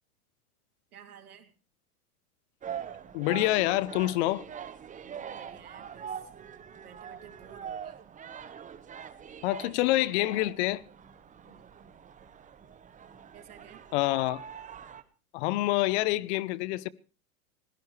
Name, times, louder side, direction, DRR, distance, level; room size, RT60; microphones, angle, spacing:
voice 1, 0.9-1.5 5.0-6.1 6.8-8.0 11.4-11.6 13.3-13.8, right 8 dB, 90° right, 3.2 m, -52 dB
sound 1, 2.6-15.0, right 8 dB, 15° right, 1.1 m, -43 dB
voice 2, 3.1-4.4 9.4-10.8 13.9-14.4 15.3-16.9, left 18 dB, 50° left, 0.8 m, -27 dB
24.0 x 16.5 x 3.3 m
hypercardioid pair, 120°, 43 cm